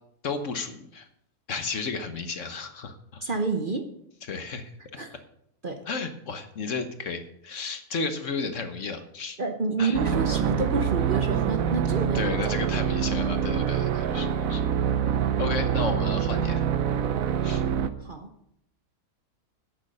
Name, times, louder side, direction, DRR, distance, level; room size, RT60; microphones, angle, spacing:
voice 1, 0.2-1.1 1.5-3.2 4.3-4.7 5.9-9.4 9.8-10.0 12.1-14.7 15.4-16.6 17.4-17.6, left 4 dB, 55° left, 8 dB, 1.3 m, -33 dB
voice 2, 3.2-3.9 5.0-5.2 5.6-5.8 9.4-12.3 13.8-14.2 18.0-18.3, right 4 dB, 40° right, 6 dB, 1.0 m, -29 dB
sound 1, 9.9-17.9, right 8 dB, 65° right, 1.2 m, -25 dB
10.5 x 8.7 x 6.6 m, 0.73 s
omnidirectional pair, 1.6 m